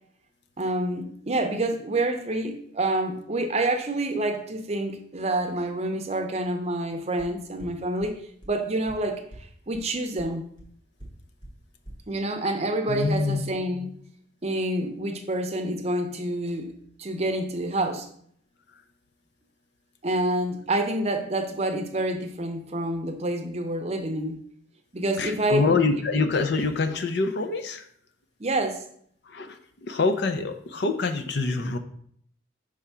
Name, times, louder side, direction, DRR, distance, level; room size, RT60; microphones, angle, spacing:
voice 1, 0.6-8.2 8.5-10.5 12.1-14.0 14.4-18.1 20.0-24.4 24.9-25.8 28.4-28.8, right 1 dB, 35° right, 5 dB, 0.6 m, -28 dB
sound 1, 7.2-7.3 7.6-7.7 8.0-8.1 8.4-8.5 8.9-9.0 9.3-9.4 9.7-9.8 10.2-10.3 10.6-10.7 11.0-11.1 11.4-11.5 11.8-11.9, right 1 dB, 20° left, 1.2 m, -43 dB
voice 2, 12.9-13.4 25.2-27.8 29.3-29.6 29.9-31.8, left 3 dB, 55° left, 8 dB, 0.5 m, -25 dB
4.8 x 3.5 x 5.6 m, 0.65 s
head